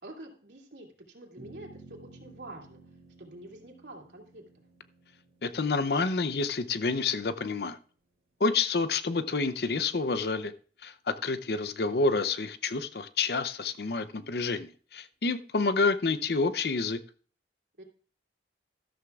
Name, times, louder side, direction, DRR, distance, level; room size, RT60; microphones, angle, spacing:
voice 1, 0.0-2.8 3.2-4.4 17.8-17.9, right 1 dB, 85° right, 2.6 m, -47 dB
sound 1, 1.4-7.9, right 2 dB, 55° right, 2.3 m, -55 dB
voice 2, 5.4-7.8 8.4-10.5 10.8-17.0, left 4 dB, 65° left, 0.6 m, -28 dB
13.0 x 13.0 x 2.4 m
head